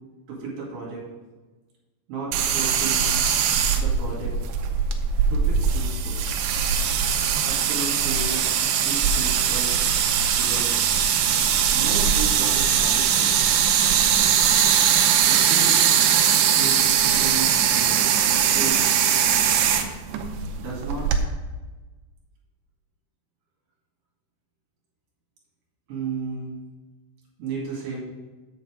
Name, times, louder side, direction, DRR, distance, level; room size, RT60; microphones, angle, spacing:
voice 1, 0.3-1.0 2.1-3.0 3.8-4.3 5.3-6.2 7.4-9.7 10.4-10.7 11.7-13.4 15.2-15.8 16.5-18.0 18.3-18.8 20.6-21.3 25.9-26.6 27.4-28.0, right 4 dB, 55° right, -4 dB, 3.7 m, -34 dB
sound 1, 2.3-21.2, right 8 dB, 80° right, 2.7 m, -21 dB
8.0 x 7.2 x 5.1 m, 1.2 s
omnidirectional pair, 5.2 m